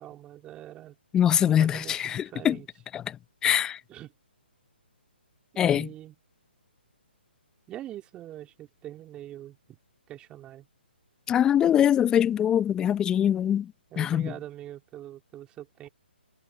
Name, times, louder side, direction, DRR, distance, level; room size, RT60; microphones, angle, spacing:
voice 1, 0.0-1.0 1.4-2.7 3.9-4.1 5.6-6.2 7.7-9.8 10.1-10.7 13.9-15.9, right 13 dB, 15° right, 3.0 m, -43 dB
voice 2, 1.1-2.6 2.9-3.0 3.4-3.8 5.6-5.9 11.3-13.7 14.0-14.3, left 10 dB, 10° left, 0.6 m, -23 dB
figure-of-eight pair, 140°, 6 cm